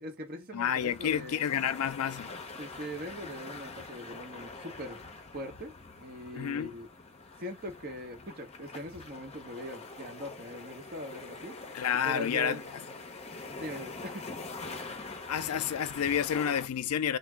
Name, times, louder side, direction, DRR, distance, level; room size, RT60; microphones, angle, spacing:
voice 1, 0.0-1.5 2.6-5.0 5.3-6.9 7.4-11.8 12.0-12.7 13.6-14.2, equal, 45° right, 1.2 m, -41 dB
voice 2, 0.5-2.3 6.3-6.7 11.7-12.6 15.3-17.2, left 8 dB, 80° left, 0.4 m, -30 dB
sound 1, 0.8-16.7, left 3 dB, 30° left, 0.6 m, -44 dB
3.3 x 2.3 x 3.4 m
head